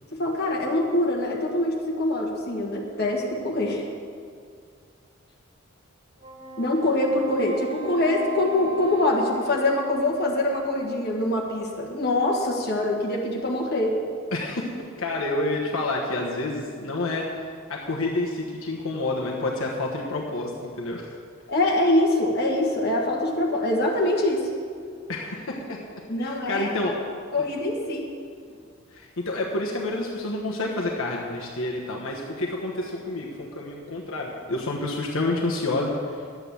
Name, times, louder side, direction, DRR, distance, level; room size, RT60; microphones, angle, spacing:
voice 1, 0.1-3.8 6.6-14.0 21.5-24.5 26.1-26.7 27.3-28.1, left 1 dB, 50° left, -1 dB, 1.7 m, -24 dB
Wind instrument woodwind instrument, 6.2-10.8, right 3 dB, 25° right, 1.8 m, -39 dB
voice 2, 14.3-14.7 15.0-21.2 25.1-25.8 26.2-26.9 28.9-36.2, left 2 dB, 75° left, -2 dB, 1.3 m, -29 dB
10.5 x 8.4 x 7.0 m, 2.2 s
head